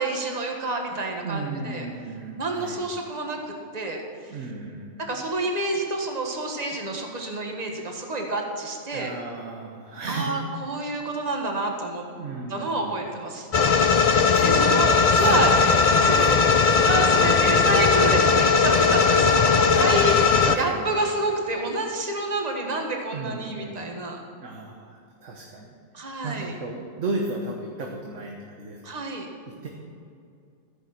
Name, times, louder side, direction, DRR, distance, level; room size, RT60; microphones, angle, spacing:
voice 1, 0.0-1.8 2.4-4.0 5.0-9.1 10.1-12.0 12.5-13.5 14.4-20.1 20.5-24.2 25.9-26.5 28.8-29.3, right 2 dB, 30° right, 2 dB, 1.6 m, -28 dB
voice 2, 1.2-2.8 4.3-5.0 8.9-10.3 12.2-13.3 14.2-14.7 15.1-15.4 15.9-16.4 16.8-16.9 19.7-21.0 23.1-23.9 24.4-28.9 29.5-29.7, right 3 dB, 60° right, 0 dB, 1.6 m, -35 dB
sound 1, 13.5-20.6, left 5 dB, 65° left, 0.3 m, -18 dB
14.0 x 10.0 x 5.9 m, 2.4 s
omnidirectional pair, 1.4 m